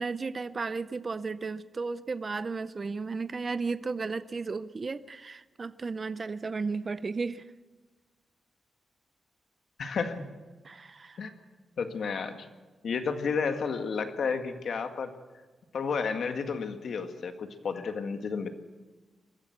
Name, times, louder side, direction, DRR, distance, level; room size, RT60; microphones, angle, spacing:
voice 1, 0.0-7.4 10.6-11.2, right 4 dB, 35° right, 14 dB, 0.6 m, -34 dB
voice 2, 9.8-10.2 11.2-11.3 11.8-12.5 12.8-15.1 15.7-18.5, left 5 dB, 60° left, 7 dB, 1.9 m, -31 dB
22.5 x 15.0 x 8.1 m, 1.3 s
wide cardioid pair, 145°, 0 cm